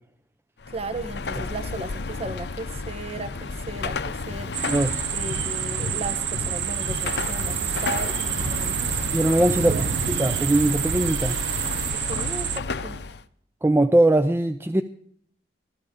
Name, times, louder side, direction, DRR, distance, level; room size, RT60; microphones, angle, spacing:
Car passing by / Traffic noise roadway noise / Engine, 0.6-13.2, left 4 dB, 65° left, 0.6 m, -32 dB
voice 1, 0.7-4.5 5.1-8.7 9.6-9.9 11.9-13.0, right 2 dB, 35° right, 12 dB, 1.0 m, -35 dB
sound 1, 4.5-12.6, right 11 dB, 70° right, 0.5 m, -28 dB
voice 2, 4.7-5.0 9.1-9.8 10.1-11.4 13.6-14.8, right 1 dB, 15° right, 8 dB, 0.4 m, -21 dB
13.5 x 13.0 x 5.0 m, 0.65 s
head